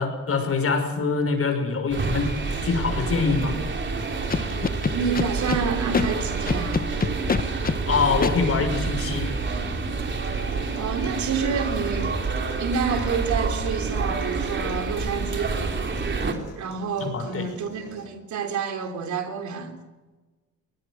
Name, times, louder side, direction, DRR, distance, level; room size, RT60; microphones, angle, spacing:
voice 1, 0.0-2.3 2.6-3.6 7.9-9.3 17.0-17.4, left 4 dB, 50° left, 6.1 m, -24 dB
sound 1, 1.9-16.3, right 4 dB, 40° right, 3.5 m, -28 dB
sound 2, 2.0-18.0, left 5 dB, 75° left, 7.1 m, -44 dB
Scratching (performance technique), 4.3-5.6 5.9-6.1 6.5-7.8 8.2-8.3, left 5 dB, 30° left, 1.1 m, -24 dB
voice 2, 4.9-6.9 10.8-12.2 12.6-15.6 16.6-19.8, right 6 dB, 70° right, 3.6 m, -28 dB
22.0 x 20.0 x 6.6 m
cardioid pair, 90°, 30 cm